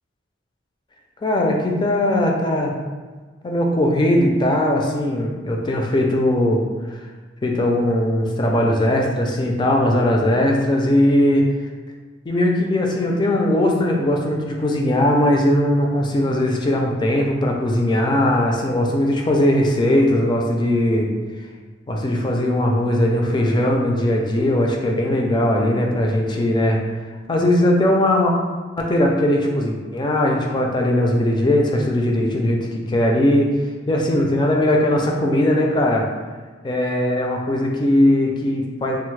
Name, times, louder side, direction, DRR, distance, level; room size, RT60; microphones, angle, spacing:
voice 1, 1.2-2.7 3.4-6.7 7.4-11.4 12.3-21.1 21.9-26.8 27.3-28.3 28.8-33.5 33.9-36.1 36.6-39.0, left 1 dB, 25° left, 1 dB, 0.3 m, -19 dB
3.3 x 2.0 x 3.1 m, 1.4 s
head